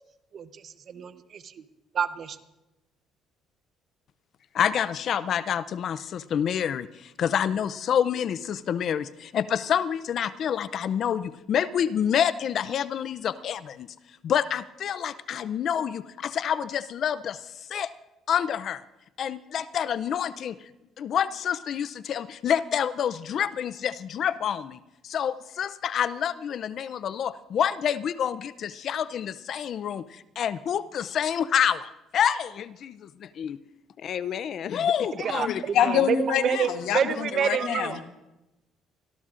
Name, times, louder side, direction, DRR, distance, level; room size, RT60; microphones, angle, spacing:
voice 1, 0.3-1.6 1.9-2.4 35.2-38.0, right 8 dB, 50° right, 0.8 m, -28 dB
voice 2, 4.5-13.9 14.2-17.9 18.3-18.8 19.2-20.6 21.0-24.8 25.0-33.6 34.0-35.9, left 8 dB, 55° left, 0.4 m, -28 dB
voice 3, 35.4-38.1, left 9 dB, 75° left, 1.1 m, -26 dB
25.5 x 13.5 x 2.5 m
cardioid pair, 105°, 0 cm